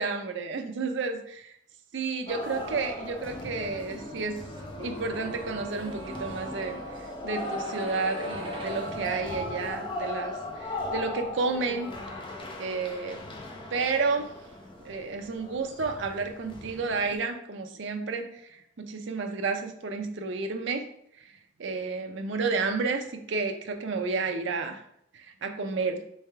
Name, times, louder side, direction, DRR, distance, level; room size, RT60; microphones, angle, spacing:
voice 1, 0.0-1.5 1.9-4.4 4.8-12.3 12.6-13.2 13.7-14.3 14.8-20.9 21.2-21.3 21.6-24.8 25.1-26.0, right 4 dB, 60° right, 5 dB, 0.5 m, -31 dB
sound 1, 2.3-17.2, left 1 dB, 25° left, 0.5 m, -38 dB
sound 2, 4.6-16.4 16.7-16.8, equal, 25° right, 0.8 m, -42 dB
3.4 x 3.2 x 4.5 m, 0.72 s
head